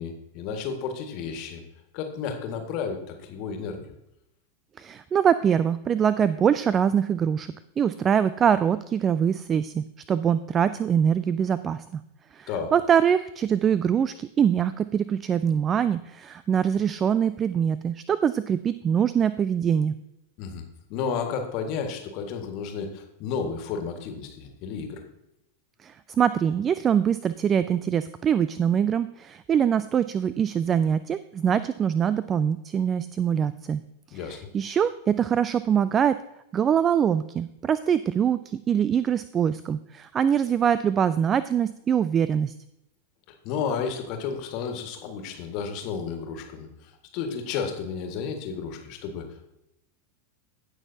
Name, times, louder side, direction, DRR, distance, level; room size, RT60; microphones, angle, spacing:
voice 1, 0.0-1.6 1.9-3.9 12.5-12.7 20.4-20.6 20.9-25.0 34.1-34.4 43.4-49.3, left 6 dB, 45° left, 4 dB, 1.7 m, -32 dB
voice 2, 4.8-7.5 7.8-12.0 12.3-19.9 25.8-33.8 34.1-36.2 36.5-42.5, right 8 dB, 25° right, 15 dB, 0.3 m, -23 dB
16.5 x 6.2 x 2.8 m, 0.86 s
figure-of-eight pair, 90°, 0 cm